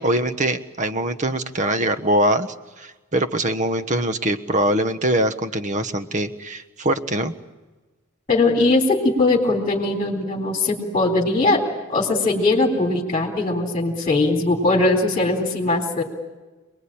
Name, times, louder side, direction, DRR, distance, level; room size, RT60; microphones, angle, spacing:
voice 1, 0.0-2.5 2.8-7.3, right 1 dB, 35° right, 10 dB, 1.2 m, -22 dB
voice 2, 8.3-11.6 11.9-16.0, left 2 dB, 25° left, -1 dB, 3.8 m, -20 dB
28.0 x 20.5 x 8.8 m, 1.2 s
head